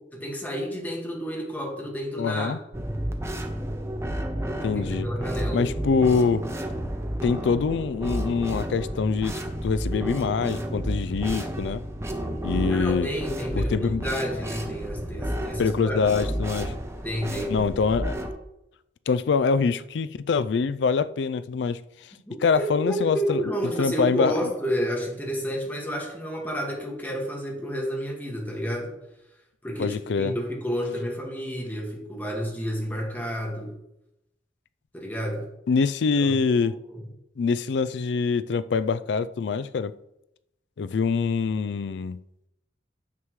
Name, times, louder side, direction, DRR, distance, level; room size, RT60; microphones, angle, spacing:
voice 1, 0.2-2.6 5.0-5.7 12.7-16.0 17.0-17.6 22.3-28.9 29.6-33.7 34.9-35.5 36.2-36.4 36.6-37.0, equal, 10° left, 1.8 m, -30 dB
voice 2, 2.2-2.6 4.6-5.1 5.5-6.5 7.2-11.8 12.4-13.1 13.5-14.1 15.6-16.7 17.5-18.2 19.1-21.8 22.4-23.4 23.8-24.5 29.8-30.3 35.7-36.7 37.4-39.9 40.8-42.2, left 5 dB, 70° left, 0.4 m, -24 dB
sound 1, 2.7-18.3, right 1 dB, 15° right, 0.8 m, -31 dB
9.6 x 7.3 x 3.1 m
head